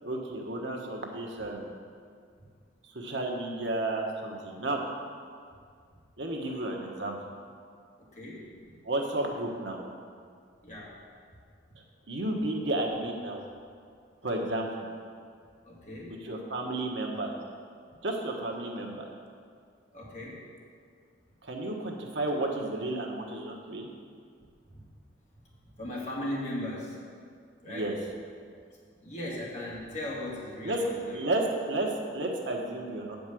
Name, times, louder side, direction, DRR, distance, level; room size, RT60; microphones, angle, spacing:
voice 1, 0.0-1.7 2.9-4.8 6.2-7.2 8.8-9.8 12.1-13.4 14.2-14.9 16.1-17.3 18.0-19.1 21.4-23.9 27.6-27.9 30.6-30.8 31.1-31.9 32.1-33.2, right 2 dB, 75° right, 1 dB, 1.2 m, -32 dB
voice 2, 8.0-8.7 10.6-10.9 15.6-16.2 19.9-20.4 24.7-24.8 25.7-27.0 27.6-27.9 29.0-31.2, left 1 dB, 40° left, -5 dB, 2.2 m, -38 dB
8.4 x 5.3 x 7.7 m, 2.1 s
head